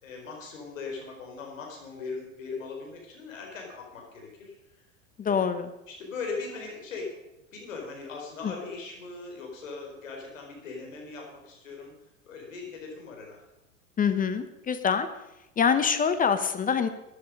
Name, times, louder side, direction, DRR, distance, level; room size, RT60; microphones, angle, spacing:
voice 1, 0.0-4.9 5.2-5.5 5.9-7.1 7.5-11.9 12.3-13.4, left 4 dB, 75° left, 0 dB, 4.5 m, -39 dB
voice 2, 5.2-5.7 8.4-8.5 14.0-15.1 15.6-16.9, left 6 dB, 20° left, 10 dB, 0.9 m, -25 dB
14.5 x 9.8 x 5.3 m, 0.95 s
hypercardioid pair, 90°, 39 cm